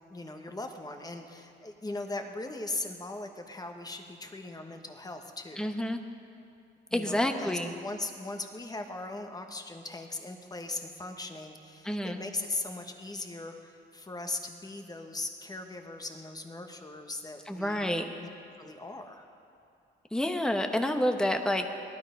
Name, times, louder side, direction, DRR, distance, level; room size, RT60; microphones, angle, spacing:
voice 1, 0.1-5.6 6.9-17.9 18.2-18.3 18.6-19.2, left 2 dB, 20° left, 5 dB, 1.4 m, -39 dB
voice 2, 5.6-6.0 6.9-7.7 11.8-12.2 17.5-18.1 20.1-21.7, left 1 dB, 5° left, 5 dB, 1.0 m, -29 dB
18.0 x 12.5 x 5.2 m, 2.5 s
cardioid pair, 90°, 20 cm